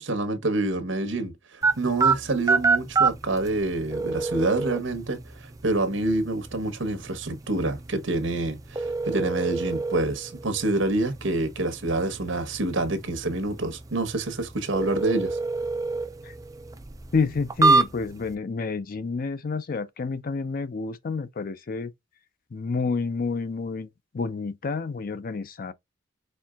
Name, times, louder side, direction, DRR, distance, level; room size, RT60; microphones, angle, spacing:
voice 1, 0.0-15.4, right 2 dB, 70° right, 1.0 m, -27 dB
sound 1, 1.6-18.3, right 4 dB, 20° right, 0.4 m, -28 dB
voice 2, 17.1-21.9 22.5-23.9 24.1-25.7, left 4 dB, 45° left, 0.5 m, -29 dB
4.4 x 3.7 x 2.3 m
head